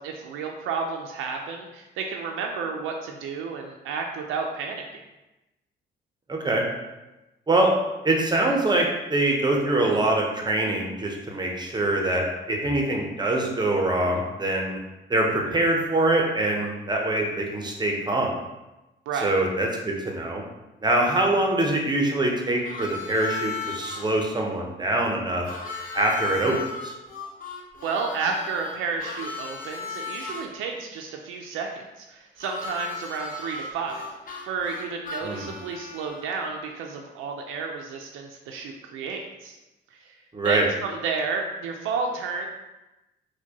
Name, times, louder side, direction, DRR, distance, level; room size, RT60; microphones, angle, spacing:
voice 1, 0.0-4.8 19.1-19.3 27.8-34.1 34.4-39.6 39.9-40.1 40.4-42.5, right 5 dB, 90° right, 1 dB, 0.4 m, -31 dB
voice 2, 6.3-6.7 7.5-7.7 8.0-14.8 15.1-18.4 19.2-20.4 20.8-25.5 25.9-26.6 26.8-26.9 35.2-35.5 40.3-40.7, right 2 dB, 20° right, 0 dB, 0.7 m, -24 dB
Harmonica, 22.6-24.1 25.5-30.5 32.4-36.3, left 4 dB, 45° left, 0.7 m, -36 dB
4.4 x 2.2 x 2.8 m, 1.0 s
cardioid pair, 90°, 20 cm